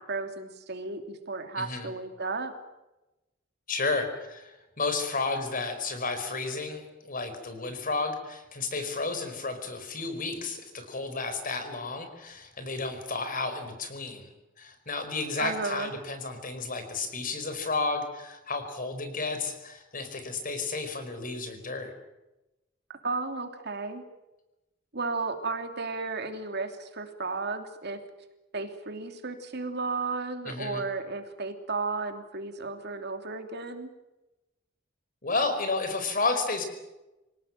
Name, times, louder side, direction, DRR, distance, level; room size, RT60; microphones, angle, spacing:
voice 1, 0.0-2.5 15.4-15.9 23.0-24.0 24.9-28.0 28.5-33.9, right 3 dB, 55° right, 6 dB, 3.0 m, -34 dB
voice 2, 1.6-1.9 3.7-14.3 14.6-21.9 30.4-30.8 35.2-36.6, left 3 dB, 45° left, 8 dB, 5.0 m, -32 dB
27.0 x 18.0 x 9.2 m, 0.99 s
head